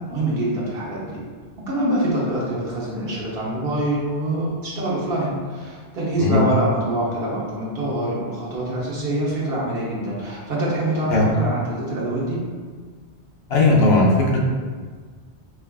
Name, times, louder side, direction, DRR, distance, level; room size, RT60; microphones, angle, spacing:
voice 1, 0.1-1.2 1.6-12.4, right 1 dB, 65° right, -5 dB, 1.0 m, -25 dB
voice 2, 13.5-14.4, left 2 dB, 70° left, -3 dB, 0.8 m, -17 dB
4.6 x 2.3 x 2.2 m, 1.5 s
omnidirectional pair, 1.1 m